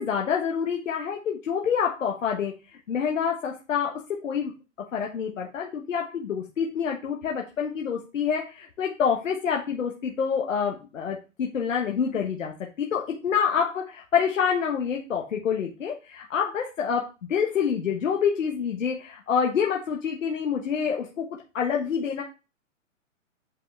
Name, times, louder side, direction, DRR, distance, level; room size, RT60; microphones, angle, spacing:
voice 1, 0.0-2.5 2.9-4.5 4.9-21.3 21.5-22.2, left 7 dB, 75° left, 0 dB, 1.4 m, -27 dB
8.3 x 3.7 x 3.4 m, 0.30 s
hypercardioid pair, 145°, 39 cm